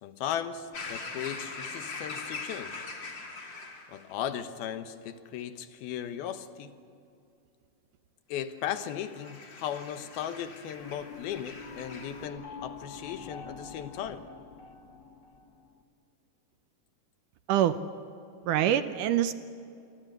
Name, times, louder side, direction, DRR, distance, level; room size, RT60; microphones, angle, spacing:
voice 1, 0.0-2.9 3.9-6.7 8.3-14.3, left 9 dB, 90° left, 10 dB, 3.1 m, -37 dB
sound 1, 0.7-4.1 8.6-12.3, left 3 dB, 35° left, 3.0 m, -42 dB
sound 2, 10.8-15.8, left 4 dB, 65° left, 1.1 m, -46 dB
voice 2, 17.5-17.8 18.5-19.4, right 11 dB, 75° right, 12 dB, 2.1 m, -25 dB
28.0 x 22.5 x 8.1 m, 2.6 s
omnidirectional pair, 4.2 m